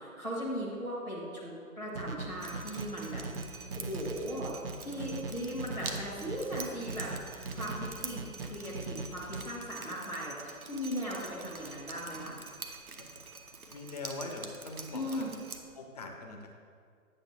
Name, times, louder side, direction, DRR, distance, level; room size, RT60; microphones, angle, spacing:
voice 1, 0.0-3.2 3.7-4.5 4.8-7.1 7.5-12.4 14.9-15.3, equal, 10° right, -9 dB, 0.8 m, -38 dB
sound 1, 1.9-9.4, right 3 dB, 45° right, 0.4 m, -41 dB
Drip, 2.4-15.6, right 4 dB, 85° right, 0.8 m, -46 dB
voice 2, 13.7-15.3 15.7-16.5, left 3 dB, 30° left, 3 dB, 0.6 m, -42 dB
8.7 x 6.4 x 3.1 m, 2.2 s
figure-of-eight pair, 135°, 42 cm